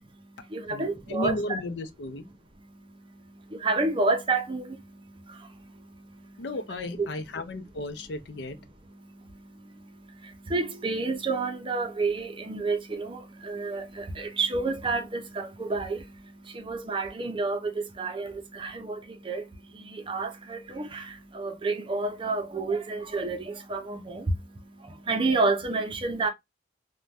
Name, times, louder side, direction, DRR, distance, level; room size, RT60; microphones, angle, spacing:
voice 1, 0.1-1.6 2.2-6.6 7.0-7.1 7.5-7.7 7.9-26.3, right 3 dB, 30° right, 0.5 m, -31 dB
voice 2, 0.7-2.2 6.4-8.6, left 1 dB, 70° left, 0.5 m, -34 dB
2.5 x 2.2 x 3.1 m
head